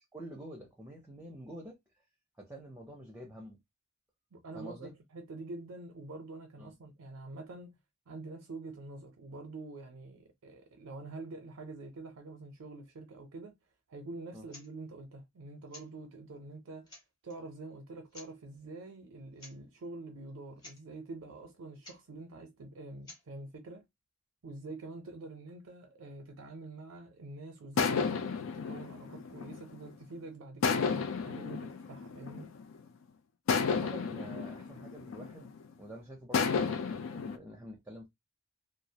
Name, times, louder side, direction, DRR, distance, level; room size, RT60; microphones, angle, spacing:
voice 1, 0.0-1.8 2.4-3.6 4.5-4.9 6.6-6.7 14.3-14.5 33.7-35.5 35.8-38.1, equal, 10° right, 0.5 m, -47 dB
voice 2, 4.3-7.7 8.1-13.5 13.9-16.9 17.2-23.8 24.4-32.5, right 2 dB, 90° right, 0.5 m, -46 dB
sound 1, 14.5-14.7 15.7-15.9 16.5-16.6 16.9-17.4 18.1-18.3 19.4-19.6 19.8-19.9 20.3-20.4 20.6-20.8 21.8-22.0 23.0-23.2, left 2 dB, 20° left, 0.9 m, -52 dB
sound 2, 27.8-30.0 30.6-32.8 33.5-35.7 36.3-37.4, left 5 dB, 70° left, 0.4 m, -32 dB
2.3 x 2.0 x 2.7 m
head